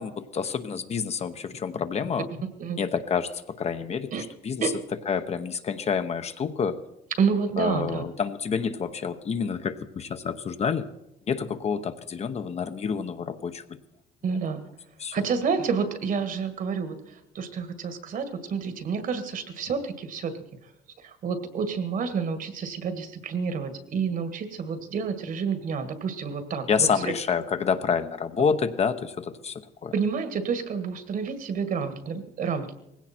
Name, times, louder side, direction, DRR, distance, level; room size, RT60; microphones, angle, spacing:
voice 1, 0.0-2.3 2.8-4.1 4.4-4.7 5.1-6.8 7.6-10.9 11.3-13.8 15.0-15.2 26.7-29.9, left 6 dB, 40° left, 9 dB, 1.0 m, -28 dB
voice 2, 7.2-8.0 14.2-14.6 15.1-20.4 21.0-27.1 29.9-32.7, right 5 dB, 55° right, 9 dB, 1.9 m, -29 dB
18.5 x 16.5 x 4.4 m, 0.85 s
cardioid pair, 110°, 17 cm